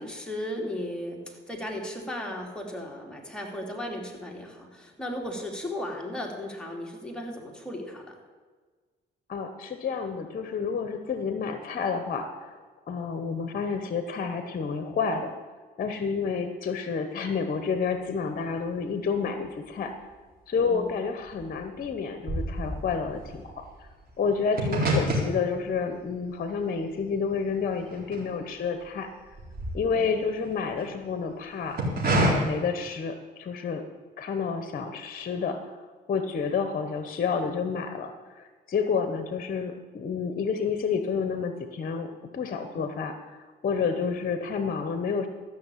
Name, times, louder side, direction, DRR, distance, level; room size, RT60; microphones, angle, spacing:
voice 1, 0.0-8.2 16.1-16.2 20.6-21.0 29.9-30.1 42.7-42.9 43.9-44.1, left 1 dB, 5° left, -1 dB, 3.0 m, -36 dB
voice 2, 9.3-12.6 12.9-15.3 15.8-19.9 20.5-23.6 24.2-29.1 29.7-31.8 32.2-33.9 34.2-35.6 36.1-43.1 43.6-45.3, left 5 dB, 45° left, 8 dB, 1.1 m, -29 dB
sound 1, 19.5-20.2 20.5-28.8 29.1-30.9 31.5-32.3, right 1 dB, 50° right, 4.2 m, -30 dB
14.0 x 6.5 x 8.4 m, 1.4 s
cardioid pair, 90°, 20 cm